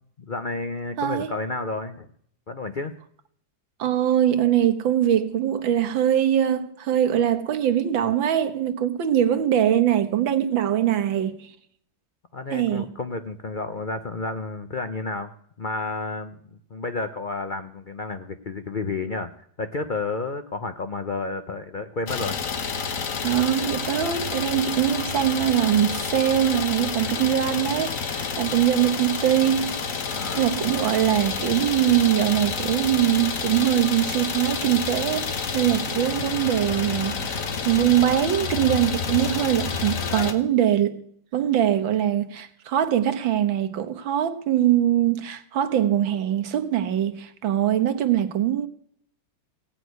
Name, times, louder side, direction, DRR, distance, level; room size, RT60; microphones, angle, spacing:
voice 1, 0.2-2.1 2.5-2.9 12.3-15.3 15.6-19.3 19.6-22.4 30.1-30.5, left 3 dB, 80° left, 0.4 m, -31 dB
voice 2, 1.0-1.3 3.8-11.5 12.5-12.9 23.2-29.8 30.4-41.1 41.3-48.7, right 11 dB, 75° right, 1.8 m, -22 dB
Idling, 22.1-40.3, left 5 dB, 45° left, 1.4 m, -29 dB
17.0 x 6.4 x 9.4 m
omnidirectional pair, 2.1 m